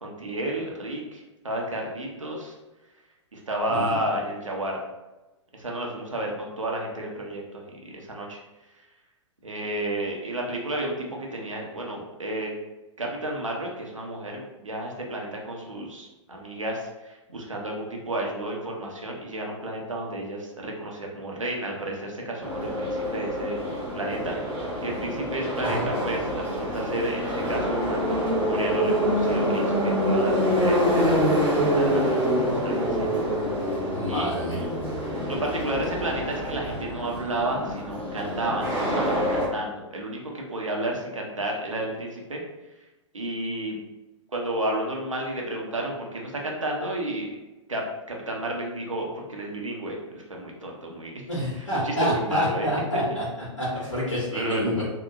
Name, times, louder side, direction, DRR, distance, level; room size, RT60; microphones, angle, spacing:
voice 1, 0.0-2.6 3.3-4.8 5.5-8.4 9.4-12.5 13.0-24.4 24.8-33.2 34.1-34.3 35.3-42.4 43.1-43.8 44.3-47.3 47.7-51.2 51.5-52.7 54.3-54.7, right 1 dB, 85° right, -1 dB, 0.6 m, -32 dB
Subway metro underground, 22.4-39.5, equal, 15° right, 0.8 m, -26 dB
voice 2, 33.9-34.6 51.3-53.2 53.6-54.8, equal, 70° left, -7 dB, 1.0 m, -28 dB
2.7 x 2.1 x 2.3 m, 1.1 s
figure-of-eight pair, 105°, 16 cm